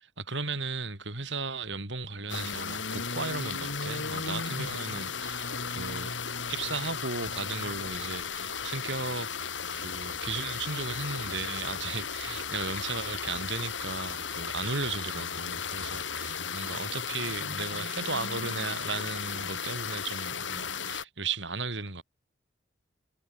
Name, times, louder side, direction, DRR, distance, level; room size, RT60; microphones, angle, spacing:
voice 1, 0.0-6.1 6.5-9.3 9.7-22.0, right 4 dB, 75° right, 5.7 m, -35 dB
sound 1, 2.3-21.0, left 6 dB, 85° left, 6.2 m, -35 dB
head